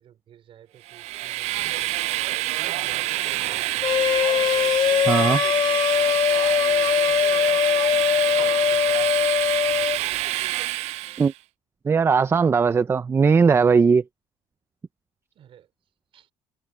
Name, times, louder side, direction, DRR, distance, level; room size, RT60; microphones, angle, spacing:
voice 1, 0.0-1.9 2.6-4.1 8.5-9.2 9.6-10.1 15.3-15.7 16.1-16.3, right 10 dB, 50° right, 4.5 m, -51 dB
Train, 0.9-11.3, right 17 dB, 65° right, 0.4 m, -27 dB
sound 1, 3.8-10.0, left 8 dB, 40° left, 0.5 m, -21 dB
voice 2, 5.1-5.4 11.2-11.3 11.8-14.0, right 5 dB, 20° right, 0.6 m, -18 dB
cardioid pair, 125°, 12 cm